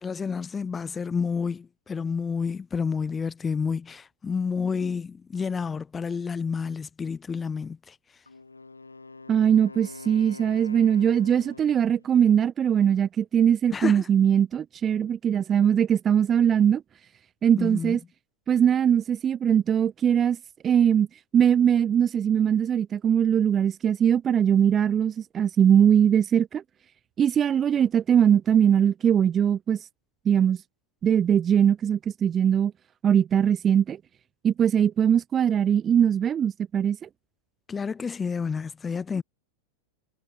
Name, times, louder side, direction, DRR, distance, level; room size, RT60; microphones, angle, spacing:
voice 1, 0.0-7.9 13.7-14.1 17.6-18.0 37.7-39.2, left 5 dB, 15° left, 7.8 m, -30 dB
Wind instrument woodwind instrument, 8.3-12.1, left 3 dB, 80° left, 7.5 m, -44 dB
voice 2, 9.3-16.8 17.4-18.0 18.5-20.4 20.6-21.1 21.3-26.6 27.2-29.9 30.3-30.6 31.0-32.7 33.0-34.0 34.4-37.1, right 8 dB, 25° right, 0.7 m, -21 dB
figure-of-eight pair, 90°, 0 cm